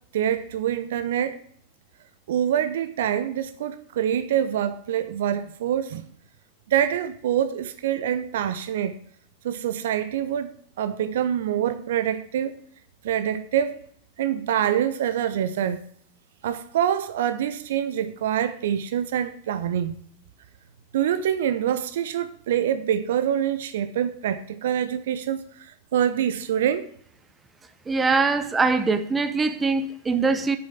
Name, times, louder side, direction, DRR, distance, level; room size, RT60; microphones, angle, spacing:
voice 1, 0.1-1.4 2.3-6.1 6.7-8.9 9.4-12.6 13.0-13.8 14.2-15.8 16.4-19.9 20.9-26.9, right 10 dB, 60° right, 0.6 m, -25 dB
voice 2, 27.9-30.6, right 4 dB, 15° right, 0.8 m, -22 dB
7.1 x 6.4 x 7.8 m
figure-of-eight pair, 90°, 0 cm